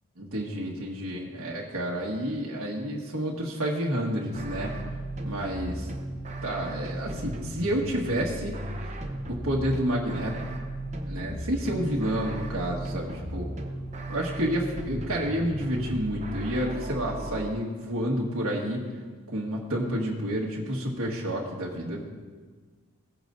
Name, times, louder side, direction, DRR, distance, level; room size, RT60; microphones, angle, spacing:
voice 1, 0.2-4.7 5.2-5.9 6.4-8.5 9.3-10.5 11.1-13.5 14.1-18.9 19.3-22.0, equal, 85° right, -3 dB, 1.6 m, -29 dB
sound 1, 4.3-17.5, right 1 dB, 35° right, 0.8 m, -35 dB
17.0 x 9.1 x 2.6 m, 1.5 s
head